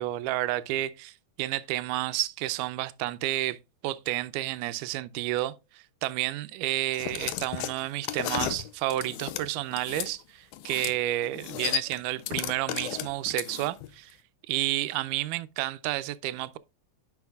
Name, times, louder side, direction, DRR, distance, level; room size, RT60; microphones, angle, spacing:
voice 1, 0.0-3.6 3.8-14.2 14.5-16.6, right 16 dB, 85° right, 2.1 m, -31 dB
sound 1, 6.9-10.1 10.5-11.0 11.2-13.9, left 12 dB, 85° left, 2.1 m, -34 dB
10.5 x 6.0 x 2.3 m
omnidirectional pair, 3.6 m